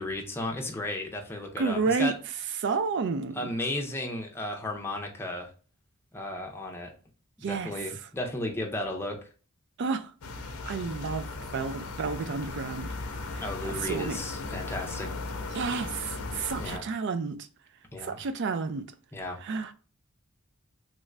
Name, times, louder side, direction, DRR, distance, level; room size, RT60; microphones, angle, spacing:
voice 1, 0.0-2.1 3.4-5.5 6.1-6.9 7.4-9.2 13.4-15.1 16.6-16.8 17.9-18.2 19.1-19.4, left 1 dB, 10° left, 0.6 m, -34 dB
voice 2, 1.6-2.1 2.6-3.5 7.4-7.7 9.8-10.1 10.4-11.3 11.5-12.9 13.3-13.4 13.7-14.2 15.5-17.4 18.0-18.9 19.4-19.7, right 4 dB, 55° right, 0.4 m, -30 dB
sound 1, 10.2-16.8, left 3 dB, 80° left, 0.5 m, -37 dB
3.1 x 2.5 x 3.2 m
head